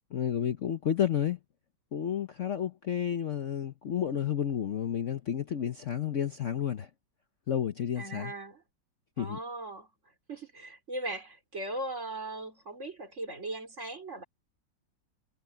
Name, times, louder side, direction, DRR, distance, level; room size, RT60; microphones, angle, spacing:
voice 1, 0.1-1.4 1.9-6.9 7.5-8.3 9.2-9.4, left 9 dB, 50° left, 1.0 m, -31 dB
voice 2, 8.0-8.6 9.2-9.9 10.3-14.2, right 2 dB, 40° right, 4.0 m, -38 dB
omnidirectional pair, 1.9 m